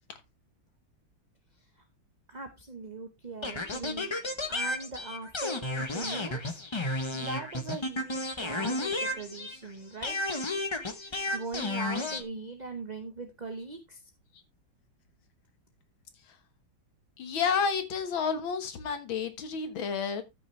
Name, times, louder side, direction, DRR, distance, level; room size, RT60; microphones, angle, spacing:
voice 1, 2.3-4.1 4.5-6.6 7.1-10.2 10.9-14.0, right 3 dB, 35° right, 0.7 m, -40 dB
sound 1, 3.4-9.7 10.0-12.2, left 2 dB, 35° left, 0.4 m, -32 dB
voice 2, 17.2-20.2, left 6 dB, 85° left, 2.2 m, -30 dB
13.0 x 6.1 x 3.1 m
omnidirectional pair, 2.1 m